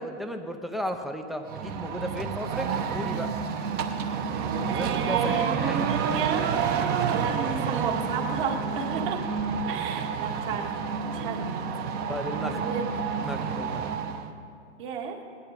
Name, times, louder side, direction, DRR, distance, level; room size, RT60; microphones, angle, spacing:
voice 1, 0.0-3.3 4.6-5.9 12.1-12.7 13.2-14.0, equal, ahead, 6 dB, 0.4 m, -35 dB
sound 1, 1.5-14.3, right 6 dB, 25° right, 0.8 m, -29 dB
voice 2, 4.7-6.4 7.1-9.2 9.7-11.5 12.6-13.1 14.8-15.2, right 6 dB, 45° right, 1 dB, 2.0 m, -33 dB
18.5 x 11.0 x 5.1 m, 2.3 s
hypercardioid pair, 125°, 36 cm